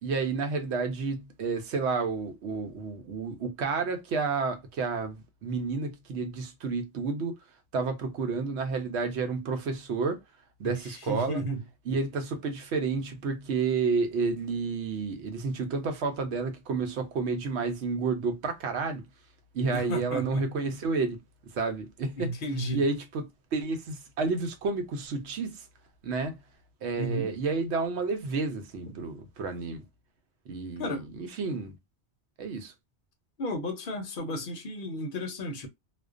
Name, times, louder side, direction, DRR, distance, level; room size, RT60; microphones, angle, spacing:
voice 1, 0.0-7.4 7.7-10.2 10.6-11.4 11.9-19.1 19.5-21.2 21.5-22.4 22.7-25.7 26.0-26.4 26.8-29.8 30.5-31.7 32.4-32.7, right 4 dB, 85° right, 0.9 m, -30 dB
voice 2, 11.1-11.6 19.6-20.4 22.2-22.8 27.0-27.3 28.9-29.0 30.8-31.1 33.4-35.7, equal, 55° left, 0.7 m, -33 dB
2.3 x 2.1 x 2.4 m
omnidirectional pair, 1.1 m